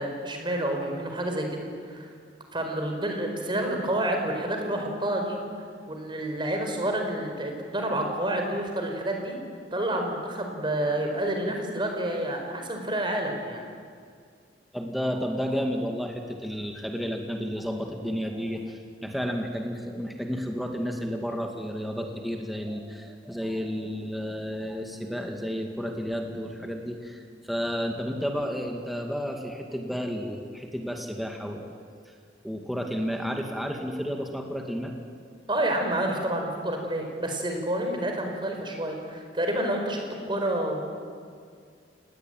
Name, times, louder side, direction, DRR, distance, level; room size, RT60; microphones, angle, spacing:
voice 1, 0.0-2.1 2.5-5.4 5.9-9.4 9.7-13.6 35.5-40.8, right 1 dB, 25° right, 3 dB, 4.8 m, -29 dB
voice 2, 14.7-31.7 32.4-34.9, equal, ahead, 2 dB, 2.1 m, -32 dB
29.0 x 19.5 x 9.2 m, 2.2 s
head